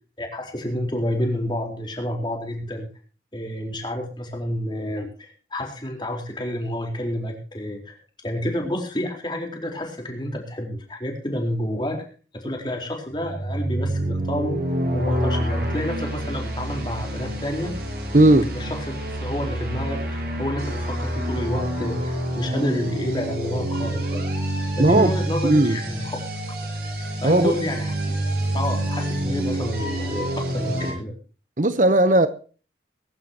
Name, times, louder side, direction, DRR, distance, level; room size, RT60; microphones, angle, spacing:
voice 1, 0.2-2.9 3.3-8.0 8.2-12.0 12.3-14.6 14.9-17.7 18.5-24.2 24.8-26.1 27.2-28.2 28.5-31.1, left 1 dB, 25° left, 4.2 m, -29 dB
sound 1, 13.1-30.9, right 1 dB, 65° right, 7.6 m, -27 dB
voice 2, 18.1-18.5 24.8-25.1 25.4-25.8 27.2-27.5 31.6-32.3, right 1 dB, 45° right, 0.9 m, -16 dB
22.5 x 12.0 x 3.0 m
head